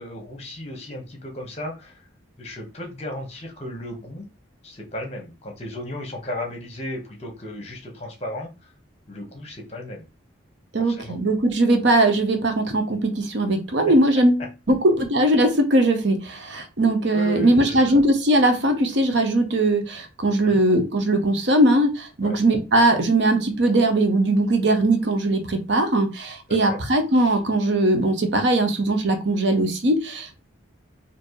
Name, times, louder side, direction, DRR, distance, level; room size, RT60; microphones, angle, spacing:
voice 1, 0.0-2.0 2.4-4.2 4.6-8.5 9.1-10.0 10.8-11.2 17.1-18.0 20.4-20.6 22.2-22.4 26.7-26.8, left 1 dB, 35° left, 2 dB, 1.2 m, -35 dB
voice 2, 10.7-30.4, right 1 dB, 65° right, 6 dB, 0.9 m, -20 dB
4.3 x 2.9 x 3.1 m, 0.28 s
head